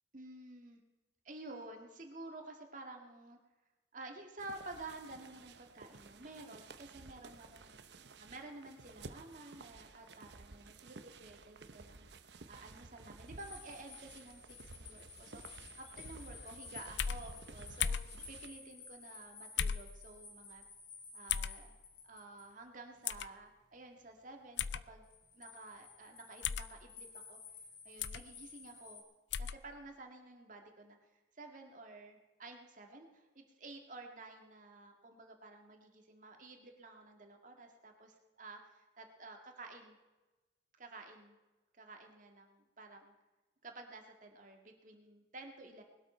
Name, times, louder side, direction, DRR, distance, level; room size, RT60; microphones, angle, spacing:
voice 1, 0.1-0.8 1.2-3.4 3.9-7.8 8.2-12.1 12.5-18.0 18.3-20.6 21.1-21.8 22.0-25.1 25.3-27.4 27.8-29.0 29.4-31.0 31.3-40.0 40.8-41.4 41.7-43.1 43.6-45.8, right 2 dB, 45° right, 3 dB, 2.1 m, -52 dB
sound 1, 4.4-18.5, right 3 dB, 75° right, 0.9 m, -54 dB
sound 2, 13.2-22.5 25.0-29.0, left 4 dB, 60° left, 3.6 m, -54 dB
sound 3, 17.0-17.2 17.8-18.1 19.6-19.9 21.3-21.6 23.1-23.3 24.6-24.8 26.4-26.7 28.0-28.2 29.3-29.6, left 8 dB, 85° left, 0.5 m, -35 dB
20.5 x 12.5 x 4.5 m, 1.1 s
head